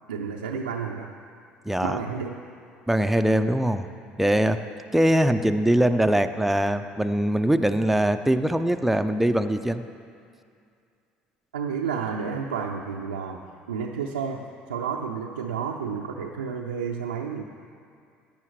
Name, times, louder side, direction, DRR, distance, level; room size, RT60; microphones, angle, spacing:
voice 1, 0.1-1.1 1.8-2.4 11.5-14.4 14.7-17.4, right 6 dB, 90° right, -2 dB, 0.5 m, -31 dB
voice 2, 1.6-2.0 2.9-3.9 4.2-4.6 4.9-9.8, right 1 dB, 5° right, 8 dB, 0.6 m, -22 dB
17.0 x 10.0 x 3.2 m, 2.3 s
hypercardioid pair, 60°, 5 cm